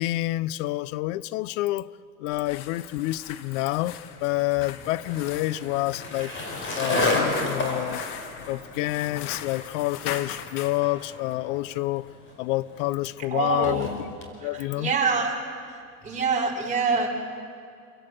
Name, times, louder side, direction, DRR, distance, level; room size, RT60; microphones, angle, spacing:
voice 1, 0.0-1.9 2.2-8.0 8.5-12.1 12.4-13.9 14.4-14.9, left 17 dB, 55° left, 0.7 m, -28 dB
sound 1, 2.3-10.8, left 10 dB, 75° left, 1.6 m, -40 dB
Skateboard, 3.8-14.3, left 2 dB, 25° left, 4.9 m, -32 dB
voice 2, 13.3-14.0 14.4-15.4 15.7-17.1, right 4 dB, 15° right, 4.8 m, -26 dB
28.0 x 17.0 x 7.8 m
supercardioid pair, 120°, 46 cm